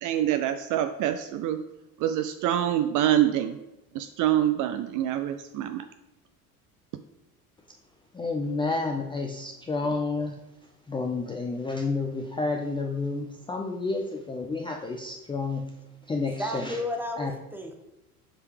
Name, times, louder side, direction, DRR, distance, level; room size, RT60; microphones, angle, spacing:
voice 1, 0.0-1.6 2.0-3.6 3.9-5.8, right 11 dB, 45° right, 8 dB, 0.5 m, -25 dB
voice 2, 8.1-16.8 17.2-17.3, left 3 dB, 10° left, 1 dB, 0.5 m, -30 dB
voice 3, 16.4-17.7, left 1 dB, 5° right, 3 dB, 1.2 m, -32 dB
7.4 x 4.7 x 3.4 m, 0.93 s
hypercardioid pair, 70°, 45 cm